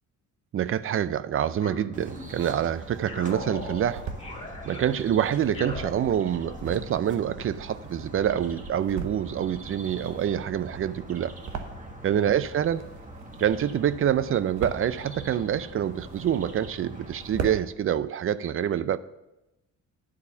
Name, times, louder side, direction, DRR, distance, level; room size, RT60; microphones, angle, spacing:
voice 1, 0.5-4.1 4.6-11.3 12.0-12.8 13.4-19.0, right 9 dB, 45° right, 16 dB, 0.5 m, -26 dB
sound 1, 1.6-2.6 3.1-6.7, left 2 dB, 20° left, 1.6 m, -41 dB
sound 2, 1.9-17.6, right 1 dB, 25° right, 1.4 m, -43 dB
sound 3, 2.5-3.1 3.6-4.3 5.0-8.3 8.7-9.5 9.8-12.2 12.5-13.7 14.1-15.0 15.6-16.6 16.9-17.0 17.2-17.6, right 6 dB, 70° right, 1.0 m, -39 dB
9.8 x 4.2 x 7.1 m, 0.92 s
cardioid pair, 90°, 30 cm